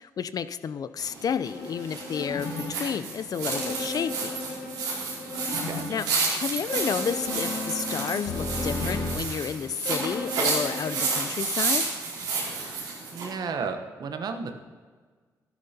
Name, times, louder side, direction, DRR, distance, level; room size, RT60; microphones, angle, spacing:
voice 1, 0.0-4.4 5.9-11.8, left 7 dB, 55° left, 14 dB, 0.4 m, -31 dB
sound 1, 1.0-13.3, right 4 dB, 90° right, 2.5 m, -31 dB
sound 2, 1.5-2.7 3.5-5.9 6.7-9.2 9.8-11.2, left 2 dB, 75° left, 1.4 m, -34 dB
voice 2, 5.7-6.0 13.1-14.6, right 5 dB, 60° right, 7 dB, 1.0 m, -33 dB
12.5 x 11.0 x 2.8 m, 1.5 s
supercardioid pair, 55°, 8 cm